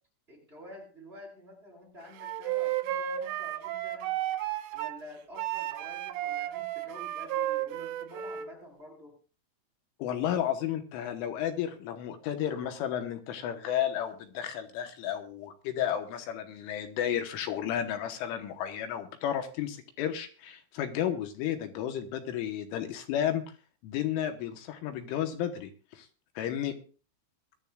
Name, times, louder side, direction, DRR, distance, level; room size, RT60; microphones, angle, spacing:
voice 1, 0.3-4.1 4.7-9.2, equal, 10° right, -1 dB, 7.4 m, -49 dB
Wind instrument woodwind instrument, 2.2-5.0 5.4-8.5, right 13 dB, 90° right, 3.6 m, -33 dB
voice 2, 10.0-23.4 23.8-26.1 26.4-26.8, left 10 dB, 80° left, 7 dB, 3.7 m, -32 dB
22.5 x 14.0 x 2.4 m, 0.38 s
omnidirectional pair, 5.6 m